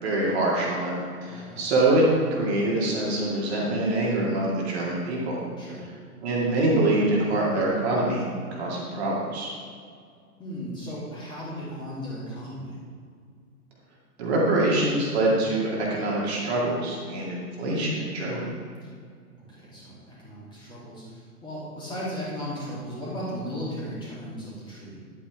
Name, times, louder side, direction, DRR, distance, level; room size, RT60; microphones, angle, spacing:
voice 1, 0.0-5.4 6.2-9.5 14.2-18.5, right 2 dB, 45° right, -4 dB, 2.2 m, -25 dB
voice 2, 1.2-1.6 5.6-5.8 10.4-12.8 18.8-18.9 19.5-25.0, equal, 10° left, -8 dB, 2.7 m, -36 dB
10.5 x 8.6 x 3.5 m, 2.1 s
figure-of-eight pair, 120°, 46 cm